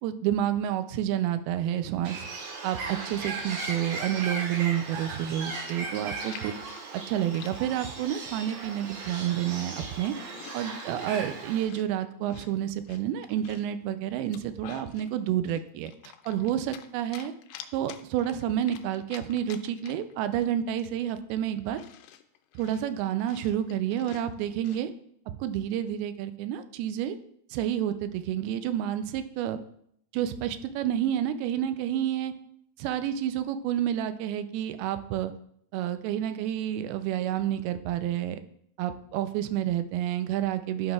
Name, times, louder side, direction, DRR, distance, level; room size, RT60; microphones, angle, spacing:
voice 1, 0.0-2.3 2.6-6.6 6.9-10.1 10.5-17.3 17.7-21.8 22.6-24.9 25.4-27.2 27.5-29.6 30.1-32.3 32.8-35.3 35.7-38.4 38.8-40.9, right 11 dB, 85° right, 10 dB, 2.4 m, -29 dB
Bird, 2.0-11.6, right 4 dB, 65° right, 2.8 m, -37 dB
Chewing mastication, 5.7-8.0 8.5-8.8 9.2-11.2 11.6-13.7 14.2-15.1 15.5-16.9 17.1-20.1 20.4-20.5 20.8-24.8, left 11 dB, 85° left, 2.5 m, -48 dB
11.5 x 6.0 x 2.3 m, 0.69 s
omnidirectional pair, 4.5 m